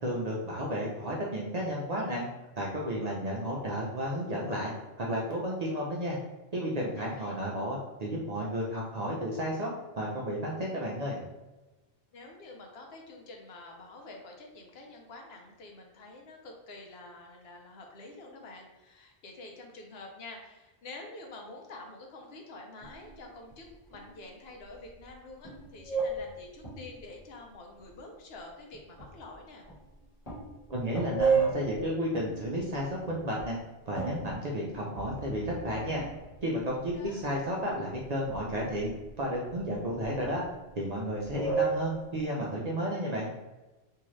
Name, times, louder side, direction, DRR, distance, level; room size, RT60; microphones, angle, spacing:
voice 1, 0.0-2.3 2.6-4.7 5.0-6.2 6.5-11.2 30.7-33.6 33.9-36.0 36.4-38.9 39.2-40.4 40.8-43.3, equal, 55° right, -3 dB, 0.5 m, -32 dB
voice 2, 6.9-7.4 12.1-29.7 36.7-37.2, left 2 dB, 70° left, 1 dB, 0.9 m, -48 dB
sound 1, 22.8-23.5 23.9-24.1 24.7-25.1 25.4-27.1 27.8-27.9 28.7-29.4 29.7-29.9 30.2-33.5 34.0-36.6 36.8-37.7 38.2-39.1 39.5-41.0 41.2-42.1, right 5 dB, 40° left, 1.1 m, -34 dB
sound 2, 34.9-37.1, right 3 dB, 85° right, 1.0 m, -48 dB
2.7 x 2.4 x 3.0 m, 1.1 s
omnidirectional pair, 1.1 m